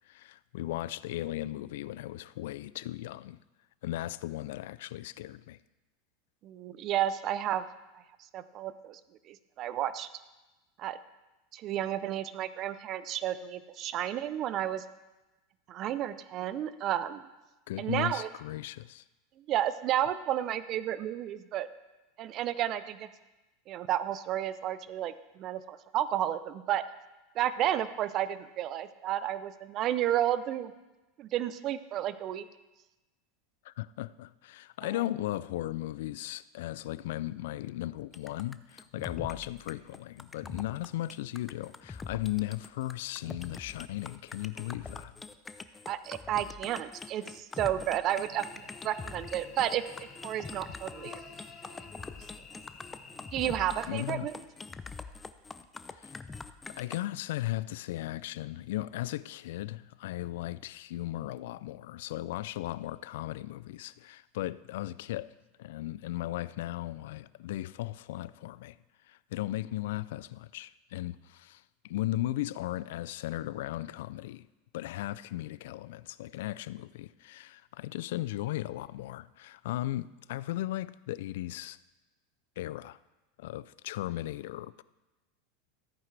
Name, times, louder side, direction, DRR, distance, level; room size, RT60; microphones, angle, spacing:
voice 1, 0.1-3.4 3.8-5.6 17.7-19.0 33.6-45.1 53.9-54.3 56.0-56.2 56.7-65.3 65.6-68.8 69.1-74.5 74.7-81.8 82.6-83.0 83.4-84.8, left 15 dB, 75° left, 0.3 m, -36 dB
voice 2, 6.4-7.7 8.3-9.0 9.3-10.1 10.8-11.0 11.5-14.8 15.7-17.3 17.8-18.3 19.5-21.7 22.2-23.1 23.7-26.8 27.4-30.7 31.2-32.4 45.9-49.8 50.2-51.2 53.3-54.4, right 11 dB, 45° right, 0.6 m, -32 dB
sound 1, 38.1-57.0, left 4 dB, 15° left, 0.5 m, -44 dB
Cricket / Buzz, 48.2-53.6, left 5 dB, 30° left, 1.7 m, -50 dB
14.0 x 8.9 x 3.3 m
supercardioid pair, 120°, 0 cm